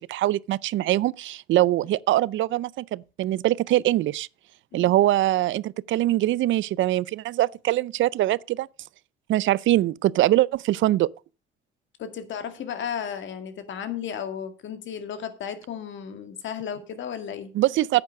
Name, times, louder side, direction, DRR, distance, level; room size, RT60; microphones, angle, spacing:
voice 1, 0.0-4.3 4.7-8.7 9.3-11.1 17.5-18.0, right 15 dB, 75° right, 0.5 m, -23 dB
voice 2, 12.0-17.5, left 8 dB, 70° left, 2.0 m, -34 dB
9.6 x 8.2 x 6.3 m
cardioid pair, 90°, 20 cm